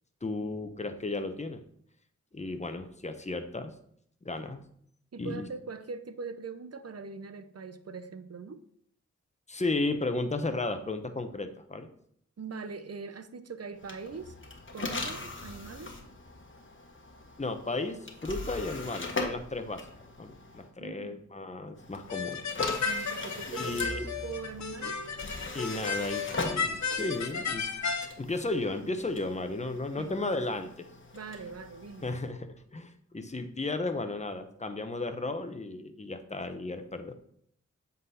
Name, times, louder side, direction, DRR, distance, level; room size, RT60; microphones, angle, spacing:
voice 1, 0.2-1.6 2.3-3.7 4.2-4.6 5.2-5.4 9.5-11.9 17.4-19.8 20.2-22.4 23.5-24.1 25.5-27.7 28.2-30.9 32.0-37.1, left 2 dB, 20° left, 7 dB, 0.9 m, -34 dB
voice 2, 5.1-8.6 12.4-14.4 14.7-15.9 20.8-21.2 22.8-25.0 30.0-30.3 31.1-32.1, right 4 dB, 55° right, 11 dB, 0.8 m, -42 dB
sound 1, 13.8-20.7 21.7-32.3, left 3 dB, 40° left, 1.3 m, -41 dB
sound 2, 22.1-28.1, left 5 dB, 65° left, 0.8 m, -33 dB
8.0 x 4.0 x 5.6 m, 0.66 s
wide cardioid pair, 55°, 30 cm